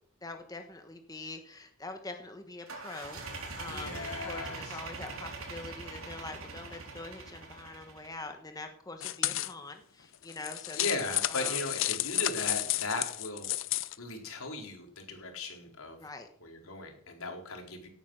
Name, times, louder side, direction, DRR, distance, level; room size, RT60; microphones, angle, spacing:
voice 1, 0.2-11.0 11.3-11.6 16.0-16.3, left 2 dB, 15° left, 6 dB, 1.2 m, -44 dB
sound 1, 2.7-8.2, right 3 dB, 80° right, 3.9 m, -42 dB
voice 2, 3.7-4.8 10.7-13.5 14.0-16.1 16.4-17.9, left 2 dB, 85° left, 3 dB, 4.0 m, -37 dB
sound 2, 9.0-9.5 10.2-14.0, left 15 dB, 65° left, 0.6 m, -32 dB
17.5 x 9.3 x 6.4 m, 0.62 s
head